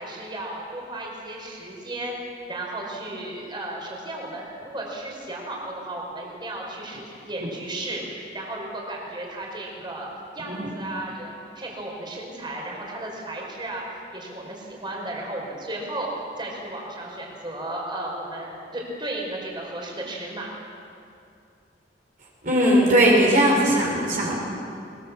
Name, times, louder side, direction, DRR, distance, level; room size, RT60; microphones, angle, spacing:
voice 1, 0.0-10.1 10.3-13.8 14.1-20.5, right 1 dB, 25° right, -1 dB, 4.6 m, -34 dB
voice 2, 22.4-24.3, right 1 dB, 50° right, -3 dB, 4.0 m, -19 dB
21.5 x 21.0 x 7.2 m, 2.6 s
head